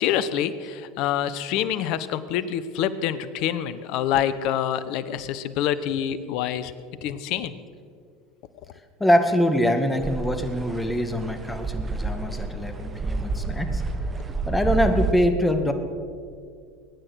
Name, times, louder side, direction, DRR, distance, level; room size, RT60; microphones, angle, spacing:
voice 1, 0.0-6.7 7.0-7.5, left 10 dB, 60° left, 15 dB, 1.0 m, -26 dB
voice 2, 9.0-13.8 14.5-15.7, equal, 10° left, 7 dB, 2.0 m, -23 dB
sound 1, 10.0-15.1, right 3 dB, 25° right, 1.5 m, -29 dB
22.5 x 9.9 x 6.3 m, 2.2 s
hypercardioid pair, 80°, 0 cm